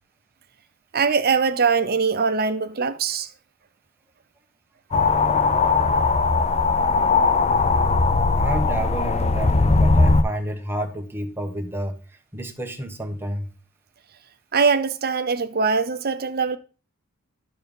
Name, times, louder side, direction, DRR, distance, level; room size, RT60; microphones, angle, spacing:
voice 1, 0.9-3.3 14.5-16.6, right 5 dB, 45° right, 0.8 m, -22 dB
sound 1, 4.9-10.2, left 3 dB, 30° left, 0.5 m, -19 dB
voice 2, 8.3-13.5, right 1 dB, 10° right, 1.2 m, -30 dB
12.0 x 4.5 x 5.4 m
head